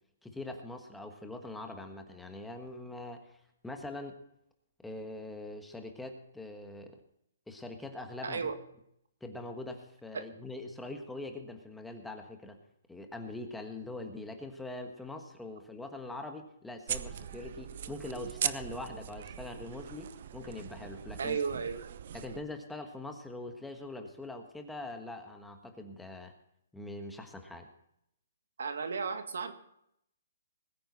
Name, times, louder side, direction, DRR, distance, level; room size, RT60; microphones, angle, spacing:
voice 1, 0.2-4.2 4.8-7.0 7.5-8.5 9.2-12.6 12.9-21.4 22.1-26.3 26.7-27.7, left 2 dB, 5° left, 5 dB, 1.4 m, -43 dB
voice 2, 8.2-8.6 21.2-21.9 28.6-29.5, right 5 dB, 80° right, 7 dB, 2.0 m, -34 dB
sound 1, 16.9-22.4, right 9 dB, 55° right, 0.8 m, -40 dB
20.5 x 9.4 x 4.0 m, 0.74 s
hypercardioid pair, 160°, 0 cm